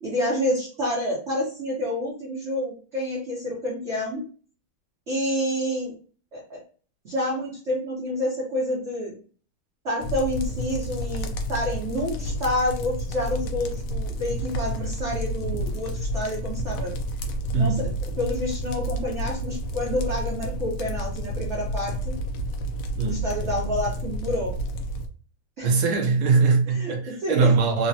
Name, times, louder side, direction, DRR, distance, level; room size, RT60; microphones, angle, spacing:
voice 1, 0.0-4.2 5.1-5.9 6.3-6.6 7.0-9.1 9.8-16.9 17.5-17.9 18.2-22.1 23.0-24.5 25.6-25.7 26.7-27.5, left 1 dB, 55° right, 0.8 m, -28 dB
sound 1, 10.0-25.1, equal, 80° left, 1.0 m, -30 dB
voice 2, 17.5-17.9 22.9-23.3 25.6-27.9, right 4 dB, 80° right, 1.5 m, -21 dB
3.6 x 2.1 x 2.7 m
omnidirectional pair, 2.4 m